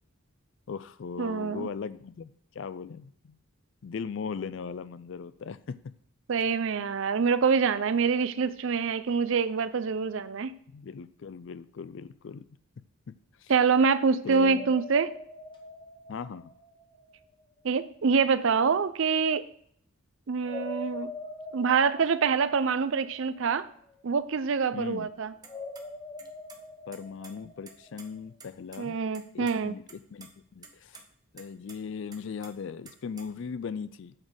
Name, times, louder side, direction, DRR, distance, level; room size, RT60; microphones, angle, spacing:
voice 1, 0.7-3.4 3.8-5.9 10.7-12.4 13.1-13.2 13.4-13.5 14.2-14.7 16.1-16.5 24.7-25.1 26.9-29.0 29.3-29.8 30.1-31.0 31.3-34.1, left 6 dB, 55° left, 15 dB, 0.4 m, -38 dB
voice 2, 1.2-1.7 6.3-10.5 13.5-15.1 17.6-19.5 20.3-21.1 21.5-23.7 24.0-25.3 28.8-29.7, right 5 dB, 60° right, 14 dB, 0.4 m, -25 dB
sound 1, 14.3-17.3 20.4-23.7 25.4-28.2, left 2 dB, 20° left, 1.0 m, -43 dB
sound 2, 25.4-25.8 26.2-26.6 26.9-28.1 28.4-28.5 28.7-28.8 29.1-29.6 29.9-30.3 30.6-31.0 31.4-31.8 32.1-33.5, right 5 dB, 20° right, 0.7 m, -49 dB
8.7 x 4.0 x 6.4 m, 0.64 s
head